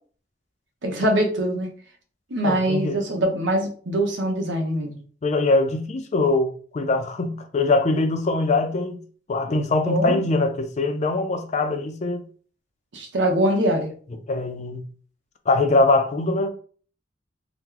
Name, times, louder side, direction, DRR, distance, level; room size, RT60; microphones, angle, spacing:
voice 1, 0.8-1.7 2.3-5.0 9.8-10.2 12.9-13.9, right 1 dB, 85° right, 0.8 m, -23 dB
voice 2, 2.4-3.0 5.2-9.0 9.3-12.2 14.3-14.8 15.5-16.5, left 2 dB, 40° left, 0.4 m, -22 dB
2.9 x 2.1 x 3.7 m
head